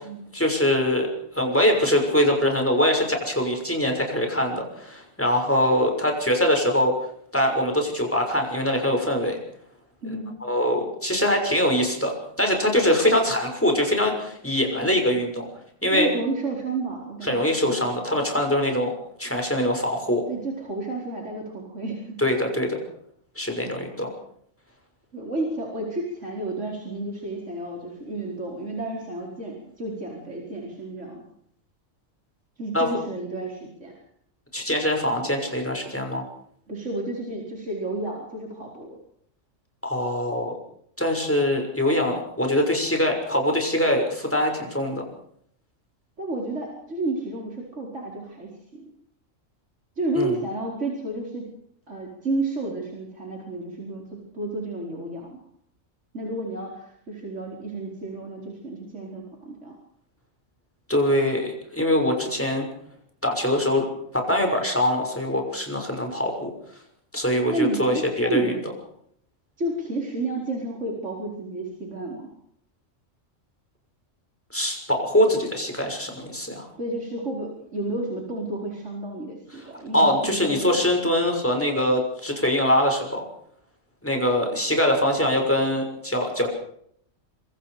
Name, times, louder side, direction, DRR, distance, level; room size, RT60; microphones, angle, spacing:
voice 1, 0.3-1.1 1.3-6.9 7.3-9.4 10.1-10.2 10.4-15.5 15.8-16.1 17.2-18.9 19.2-20.2 22.2-22.8 23.4-24.1 32.7-32.9 34.5-36.2 39.8-40.5 41.0-45.0 50.1-50.4 60.9-62.7 63.2-63.8 64.1-66.5 67.1-68.5 74.5-76.7 79.9-83.2 84.0-86.5, left 1 dB, 10° left, 3 dB, 6.3 m, -23 dB
voice 2, 10.0-10.4 15.9-17.4 20.3-22.1 25.1-31.2 32.6-33.9 36.7-39.0 46.2-48.9 50.0-51.5 51.9-55.4 56.1-59.7 67.5-68.6 69.6-72.3 76.8-80.8 84.5-84.6, right 2 dB, 65° right, -1 dB, 5.2 m, -31 dB
26.5 x 24.0 x 5.1 m, 0.68 s
omnidirectional pair, 1.3 m